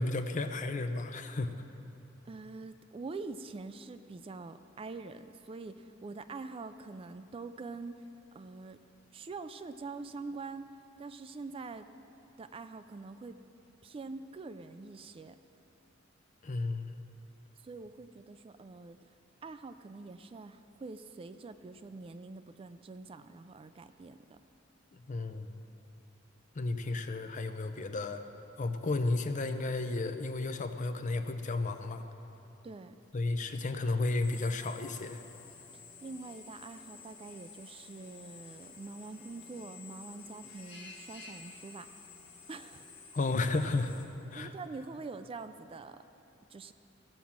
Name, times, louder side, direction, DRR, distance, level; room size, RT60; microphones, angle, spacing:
voice 1, 0.0-1.6 16.4-16.9 24.9-25.5 26.6-28.2 28.6-32.0 33.1-35.2 43.1-44.0 44.3-44.5, left 2 dB, 40° left, 8 dB, 0.6 m, -33 dB
voice 2, 2.3-8.0 8.3-8.8 9.1-10.7 11.0-11.9 12.4-13.4 13.8-15.4 17.6-19.0 19.4-24.4 32.6-33.0 35.7-41.9 42.5-42.8 44.4-46.0 46.5-46.7, right 3 dB, 30° right, 11 dB, 0.3 m, -45 dB
Drill, 34.2-44.1, left 5 dB, 65° left, 1.4 m, -52 dB
16.5 x 6.0 x 7.2 m, 2.9 s
head